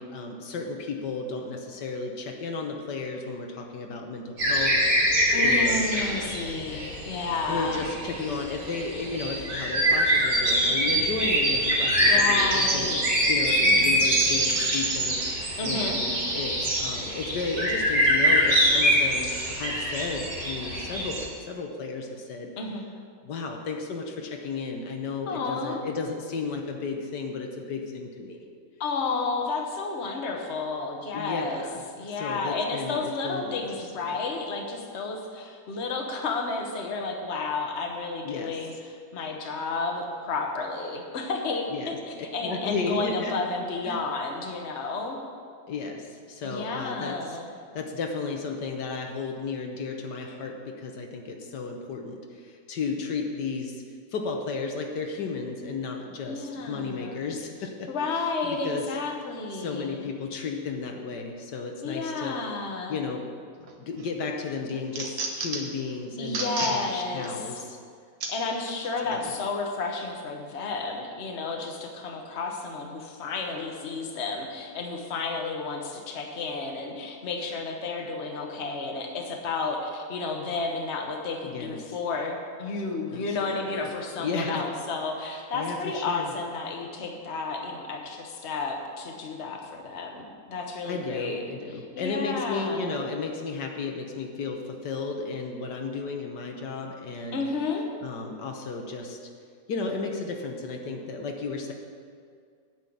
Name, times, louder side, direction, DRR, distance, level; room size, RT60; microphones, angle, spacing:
voice 1, 0.0-6.3 7.5-22.5 23.2-28.4 31.1-31.8 32.1-34.1 38.2-38.6 41.7-43.3 43.9-44.0 45.7-47.4 47.7-53.8 54.1-57.9 58.4-58.9 59.5-62.4 62.9-63.2 63.8-67.8 69.1-69.3 81.4-81.9 83.1-84.6 85.5-86.3 90.8-97.4 98.0-99.2 99.7-101.7, left 4 dB, 75° left, 2 dB, 1.6 m, -34 dB
sound 1, 4.4-21.3, equal, 85° right, 3.7 m, -24 dB
voice 2, 5.3-7.9 12.0-13.1 13.6-14.0 15.6-16.0 21.0-21.1 22.6-22.8 25.3-25.8 28.8-31.6 32.0-45.2 46.4-47.5 56.2-57.3 57.9-60.0 61.8-63.0 66.2-67.4 68.3-91.4 91.7-93.0 97.3-97.9, left 3 dB, 45° left, 2 dB, 1.3 m, -32 dB
sound 2, 63.7-64.1 64.5-65.8 66.2-66.8 67.2-67.3 68.2-68.3 69.1-69.2, right 3 dB, 65° right, 1.7 m, -32 dB
9.1 x 6.3 x 8.5 m, 2.1 s
omnidirectional pair, 1.8 m